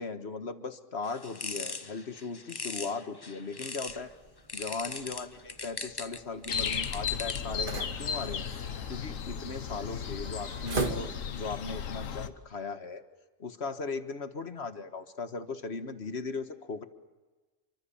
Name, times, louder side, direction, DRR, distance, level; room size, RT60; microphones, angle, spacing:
voice 1, 0.0-4.1 4.5-8.5 8.9-13.0 13.4-16.9, left 4 dB, 55° left, 9 dB, 1.7 m, -38 dB
sound 1, 1.0-4.1 4.5-7.6, left 3 dB, 20° left, 0.7 m, -40 dB
sound 2, 3.9-11.6, right 3 dB, 40° right, 2.2 m, -40 dB
sound 3, 6.5-12.3, left 7 dB, 85° left, 1.5 m, -35 dB
29.5 x 24.0 x 7.2 m, 1.2 s
omnidirectional pair, 1.3 m